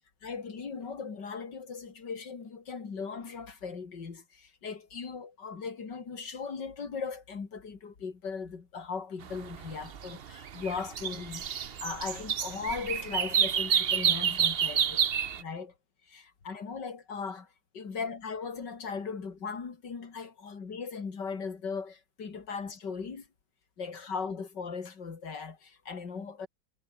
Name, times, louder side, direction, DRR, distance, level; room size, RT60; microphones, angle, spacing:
voice 1, 0.2-15.1 15.4-15.7 16.1-17.5 17.7-23.3 23.8-26.5, left 5 dB, 70° left, 3.3 m, -38 dB
sound 1, 9.2-15.4, right 8 dB, 45° right, 0.7 m, -29 dB
omnidirectional pair, 2.0 m